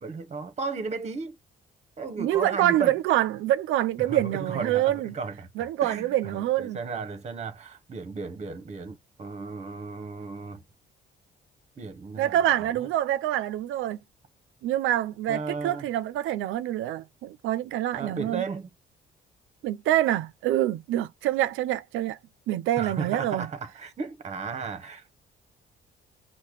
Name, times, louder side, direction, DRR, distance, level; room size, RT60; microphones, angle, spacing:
voice 1, 0.0-1.4 2.0-3.0 4.0-10.6 11.8-12.9 15.3-15.9 17.9-18.7 22.8-25.1, right 4 dB, 35° right, 0.8 m, -35 dB
voice 2, 2.2-5.1 5.6-6.8 12.2-14.0 14.6-18.4 19.6-22.2 22.5-23.5, right 13 dB, 85° right, 0.4 m, -26 dB
5.6 x 2.1 x 3.2 m
cardioid pair, 90°, 20 cm